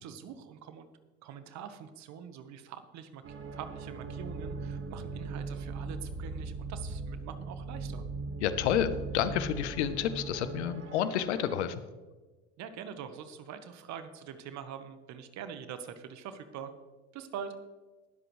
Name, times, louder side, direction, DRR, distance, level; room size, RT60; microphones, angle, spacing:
voice 1, 0.0-0.9 1.2-8.0 12.6-16.7 17.1-17.6, right 8 dB, 55° right, 10 dB, 1.3 m, -44 dB
sound 1, 3.2-11.5, right 3 dB, 40° right, 1.8 m, -39 dB
voice 2, 8.4-11.8, left 9 dB, 80° left, 12 dB, 0.9 m, -30 dB
20.5 x 7.8 x 3.2 m, 1.3 s
hypercardioid pair, 75°, 33 cm